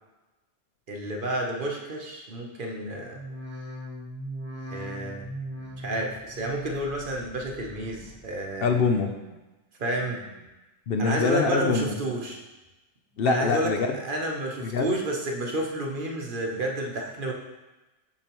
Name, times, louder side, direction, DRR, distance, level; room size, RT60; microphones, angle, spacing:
voice 1, 0.9-3.2 4.7-5.3 5.8-8.8 9.8-10.2 11.0-12.4 13.2-13.7 14.0-17.3, right 1 dB, 50° right, 0 dB, 0.9 m, -30 dB
sound 1, 3.1-8.4 8.7-9.3 9.8-10.5 10.9-11.6 12.0-12.7 13.1-13.7 14.2-14.3, equal, 10° right, 1.3 m, -41 dB
voice 2, 8.6-9.1 10.9-11.9 13.2-13.9 14.6-15.0, left 4 dB, 60° left, 4 dB, 0.7 m, -24 dB
7.0 x 6.4 x 3.0 m, 1.1 s
omnidirectional pair, 1.2 m